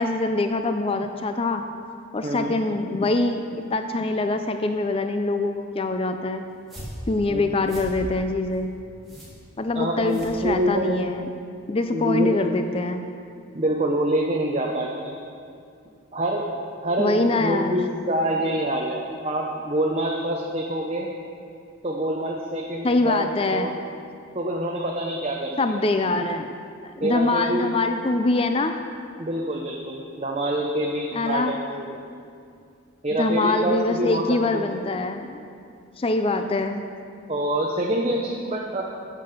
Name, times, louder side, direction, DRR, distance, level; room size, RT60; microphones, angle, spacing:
voice 1, 0.0-1.6 2.1-6.4 7.1-8.7 9.6-11.3 11.7-13.0 17.0-17.8 22.8-23.7 25.6-26.5 27.0-28.8 31.1-31.6 33.2-35.5 36.0-36.8, left 2 dB, 25° left, 7 dB, 0.4 m, -24 dB
voice 2, 2.2-2.5 7.3-7.5 9.7-11.0 11.9-12.4 13.5-15.1 16.1-21.1 21.8-23.7 24.3-25.8 27.0-27.7 29.2-32.0 33.0-34.6 37.3-38.8, right 1 dB, 30° right, -1 dB, 0.7 m, -26 dB
sound 1, 6.5-11.0, equal, ahead, 2.9 m, -40 dB
9.4 x 7.4 x 6.6 m, 2.4 s
head